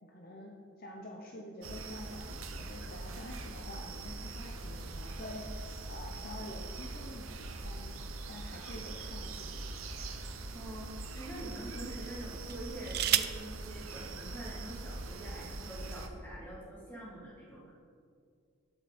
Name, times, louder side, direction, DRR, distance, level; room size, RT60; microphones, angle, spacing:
voice 1, 0.0-7.9 8.3-9.7, left 1 dB, 45° left, 0 dB, 0.8 m, -47 dB
sound 1, 1.6-16.1, right 2 dB, 80° right, 0.9 m, -42 dB
sound 2, 8.8-9.9 10.7-10.8 12.4-13.5 14.6-14.7 15.0-15.4, right 12 dB, 45° right, 0.4 m, -33 dB
voice 2, 10.5-17.7, right 1 dB, 10° left, -7 dB, 2.8 m, -45 dB
11.0 x 7.8 x 4.3 m, 2.3 s
head